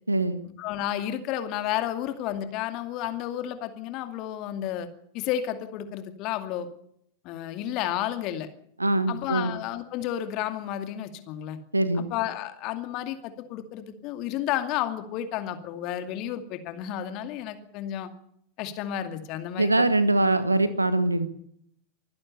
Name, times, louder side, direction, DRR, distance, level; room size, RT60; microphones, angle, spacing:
voice 1, 0.1-0.4 8.8-9.6 11.7-12.1 19.6-21.3, right 2 dB, 85° right, 13 dB, 1.5 m, -23 dB
voice 2, 0.6-4.9 5.1-6.7 7.2-8.5 9.1-11.6 12.1-18.1 18.6-19.7, left 11 dB, 40° left, 8 dB, 2.4 m, -31 dB
24.5 x 16.0 x 6.8 m, 0.71 s
figure-of-eight pair, 90°, 0 cm